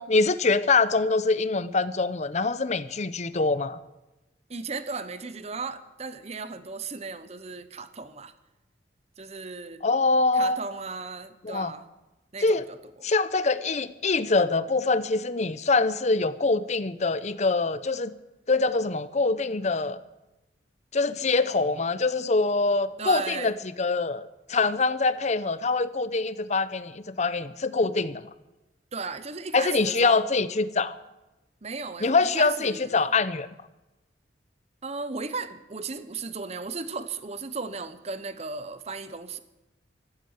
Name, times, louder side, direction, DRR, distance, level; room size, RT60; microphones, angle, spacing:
voice 1, 0.0-3.8 9.8-10.6 11.4-11.7 12.4-12.7 13.0-18.1 18.5-20.0 20.9-28.2 29.5-31.0 32.0-33.5, left 3 dB, 40° left, 0.7 m, -24 dB
voice 2, 4.5-8.3 9.2-9.8 10.3-11.9 12.3-13.1 23.0-23.5 28.9-30.2 31.6-33.0 34.8-39.4, right 4 dB, 35° right, 0.9 m, -36 dB
14.5 x 12.0 x 8.0 m
head